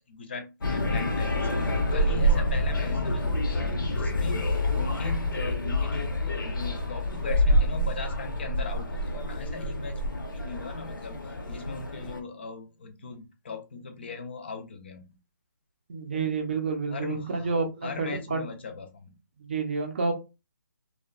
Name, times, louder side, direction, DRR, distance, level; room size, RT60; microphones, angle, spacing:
voice 1, 0.0-11.2 11.5-15.2 16.1-16.4 16.9-17.5 17.8-19.1, left 3 dB, 30° left, 6 dB, 0.4 m, -39 dB
sound 1, 0.6-12.2, left 1 dB, 85° left, 0.8 m, -27 dB
voice 2, 15.9-18.4 19.4-20.1, right 4 dB, 30° right, 4 dB, 0.5 m, -29 dB
2.7 x 2.1 x 2.3 m, 0.26 s
hypercardioid pair, 170°, 11 cm